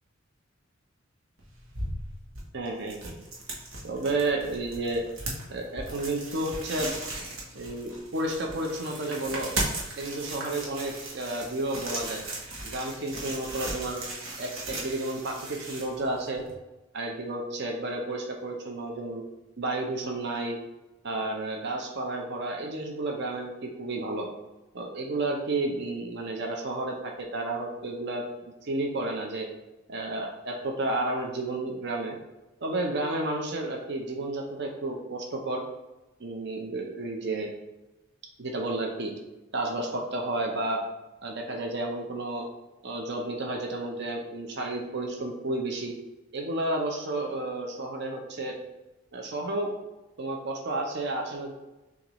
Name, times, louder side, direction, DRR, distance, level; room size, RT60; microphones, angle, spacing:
sound 1, 1.4-16.5, right 2 dB, 80° right, 1.1 m, -37 dB
voice 1, 2.5-3.2 3.8-5.0 5.5-6.9 7.5-9.5 10.0-12.2 12.6-14.0 14.4-16.4 16.9-19.2 19.6-20.6 21.0-24.3 24.7-28.2 28.6-29.5 29.9-32.2 32.6-35.6 36.2-37.5 38.4-39.1 39.5-40.8 41.2-42.5 42.8-45.9 46.3-48.5 49.1-49.7 50.2-51.5, right 2 dB, 60° right, 1 dB, 0.7 m, -31 dB
6.4 x 2.5 x 3.1 m, 1.0 s
head